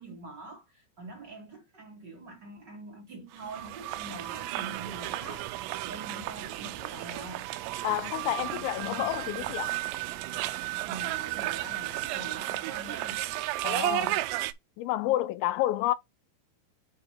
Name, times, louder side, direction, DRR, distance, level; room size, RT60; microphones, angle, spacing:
voice 1, 0.0-5.5 5.8-7.5 10.8-13.2, right 3 dB, 50° right, 1.3 m, -44 dB
sound 1, 3.3-14.5, right 16 dB, 90° right, 2.5 m, -33 dB
sound 2, 4.7-12.4, right 11 dB, 75° right, 2.8 m, -49 dB
voice 2, 7.8-9.8 13.6-14.2 14.8-15.9, left 15 dB, 80° left, 2.9 m, -29 dB
9.0 x 3.3 x 4.5 m
omnidirectional pair, 5.6 m